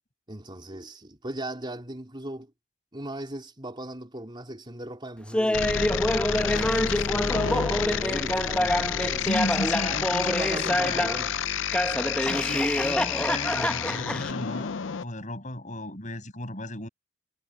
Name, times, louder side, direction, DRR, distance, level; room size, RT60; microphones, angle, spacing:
voice 1, 0.3-2.5 2.9-6.0 6.4-9.3 10.2-11.5, right 1 dB, 25° right, 3.7 m, -38 dB
Laughter, 5.3-11.3 11.7-14.3, left 1 dB, 5° left, 1.0 m, -27 dB
sound 1, 5.5-15.0, left 8 dB, 70° left, 0.6 m, -30 dB
voice 2, 9.2-11.0 12.2-16.9, left 1 dB, 40° left, 6.7 m, -35 dB
head